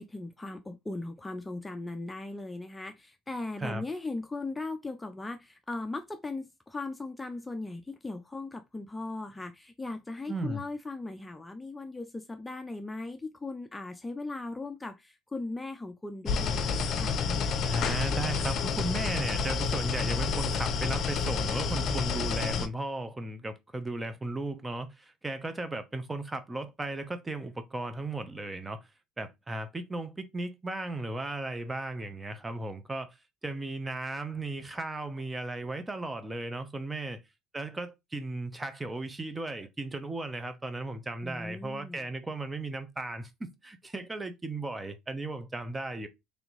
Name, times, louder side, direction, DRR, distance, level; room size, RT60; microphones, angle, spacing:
voice 1, 0.0-17.2 41.2-42.1, left 2 dB, 15° left, 0.6 m, -38 dB
voice 2, 10.3-10.6 17.6-28.8 29.2-33.2 33.4-37.2 37.5-46.1, right 2 dB, 20° right, 0.9 m, -36 dB
sound 1, 16.3-22.7, left 5 dB, 50° left, 0.6 m, -29 dB
3.5 x 2.9 x 4.0 m
hypercardioid pair, 75°, 0 cm